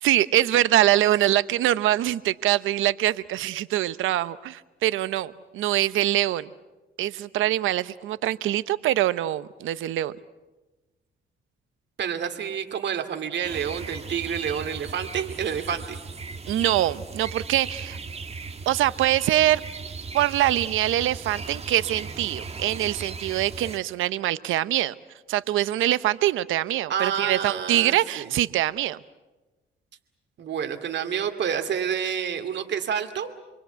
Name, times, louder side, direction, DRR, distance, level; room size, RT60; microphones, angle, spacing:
voice 1, 0.0-6.5 7.0-10.1 16.5-18.0 18.7-19.6 20.1-24.9 25.3-29.0, right 14 dB, 85° right, 16 dB, 0.9 m, -24 dB
voice 2, 12.0-16.0 26.9-28.3 30.4-33.3, right 8 dB, 65° right, 6 dB, 2.6 m, -29 dB
sound 1, 13.4-23.8, right 4 dB, 30° right, 1.6 m, -37 dB
27.5 x 23.0 x 8.2 m, 1.1 s
cardioid pair, 90°, 20 cm